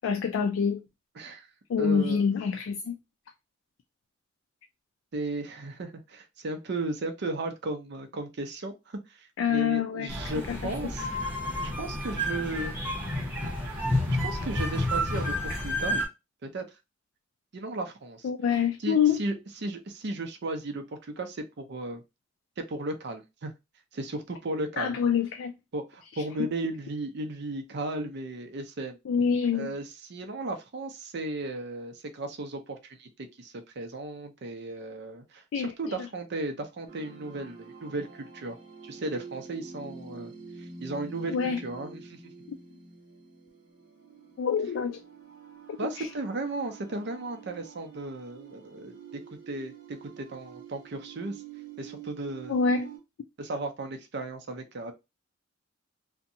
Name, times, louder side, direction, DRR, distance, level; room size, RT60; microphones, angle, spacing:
voice 1, 0.0-0.8 1.7-3.0 9.4-10.7 18.2-19.2 24.8-25.5 26.1-26.2 29.1-29.7 35.5-35.9 41.3-41.6 42.5-42.6 44.4-45.0 45.7-46.1 52.5-52.9, left 6 dB, 80° left, 0.3 m, -26 dB
voice 2, 1.2-1.5 1.8-2.3 5.1-11.1 11.6-12.8 14.2-16.0 16.4-16.7 17.5-18.3 18.8-19.4 19.6-22.0 22.6-23.5 23.9-25.0 25.7-29.0 29.5-38.6 38.8-40.3 40.6-42.2 45.8-49.2 49.5-51.4 51.8-52.5 53.4-54.9, right 2 dB, 60° right, 0.5 m, -35 dB
sound 1, 10.1-16.1, left 1 dB, 10° right, 0.9 m, -30 dB
sound 2, 36.9-53.0, right 5 dB, 80° right, 1.0 m, -47 dB
2.7 x 2.2 x 2.5 m
head